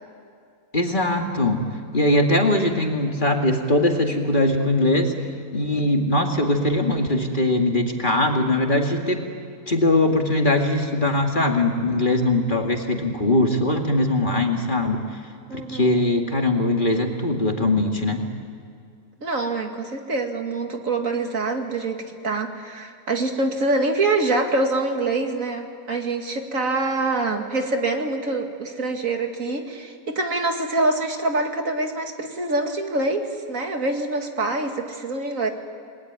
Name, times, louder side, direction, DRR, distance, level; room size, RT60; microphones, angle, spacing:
voice 1, 0.7-1.6 1.9-5.1 5.5-9.2 9.7-15.0 15.5-18.2, left 1 dB, 35° left, 2 dB, 2.3 m, -21 dB
voice 2, 15.5-16.0 19.2-35.5, right 2 dB, 65° right, 4 dB, 2.4 m, -25 dB
29.5 x 20.5 x 9.5 m, 2.3 s
omnidirectional pair, 1.5 m